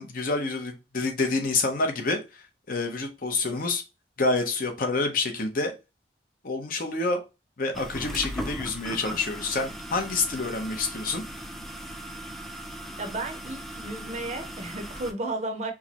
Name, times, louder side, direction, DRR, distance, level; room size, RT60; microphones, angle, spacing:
voice 1, 0.0-2.2 2.7-3.8 4.2-5.7 6.4-7.2 7.6-11.2, left 3 dB, 50° left, 0.8 m, -27 dB
sound 1, 7.7-15.1, equal, ahead, 0.5 m, -38 dB
voice 2, 13.0-15.7, right 2 dB, 40° right, 0.7 m, -33 dB
4.7 x 2.1 x 2.8 m
head